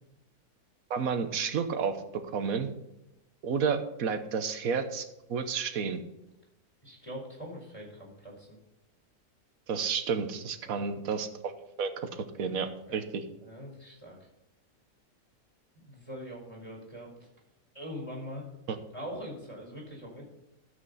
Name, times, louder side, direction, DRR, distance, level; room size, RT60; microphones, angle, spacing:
voice 1, 0.9-2.0 2.3-2.7 3.4-6.0 9.7-11.5 11.8-12.1 12.4-13.2 18.7-18.8, right 6 dB, 65° right, 8 dB, 1.4 m, -31 dB
voice 2, 6.8-8.6 10.6-10.8 12.9-13.0 13.4-14.2 15.8-17.1 17.7-18.5 18.9-20.2, equal, 20° left, 0 dB, 4.7 m, -42 dB
12.5 x 8.2 x 4.1 m, 0.89 s
omnidirectional pair, 1.7 m